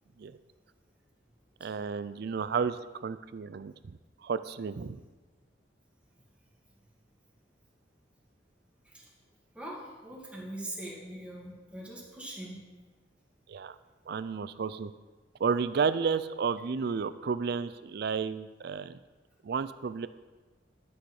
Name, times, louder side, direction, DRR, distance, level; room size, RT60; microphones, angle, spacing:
voice 1, 1.6-5.0 13.5-13.7 14.1-14.9 15.4-19.0 19.4-20.1, right 5 dB, 60° right, 14 dB, 0.4 m, -32 dB
voice 2, 9.5-12.6, right 1 dB, 5° right, -4 dB, 2.0 m, -42 dB
11.5 x 6.3 x 4.8 m, 1.3 s
head